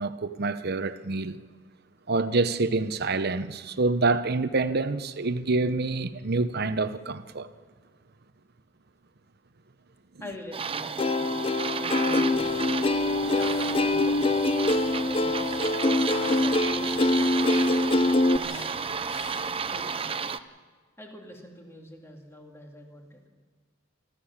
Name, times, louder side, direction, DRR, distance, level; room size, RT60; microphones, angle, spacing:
voice 1, 0.0-1.4 2.1-7.5, right 3 dB, 55° right, 0.9 m, -27 dB
voice 2, 10.2-11.0 11.7-12.6 13.3-14.3 14.9-15.7 16.3-17.0 17.8-18.8 19.6-20.1 21.0-23.2, left 1 dB, 15° left, 2.6 m, -45 dB
sound 1, 10.5-20.4, right 6 dB, 30° right, 0.6 m, -32 dB
Plucked string instrument, 11.0-18.4, left 2 dB, 30° left, 0.5 m, -24 dB
sound 2, 12.3-19.8, left 4 dB, 85° left, 3.7 m, -48 dB
28.0 x 13.5 x 7.2 m
head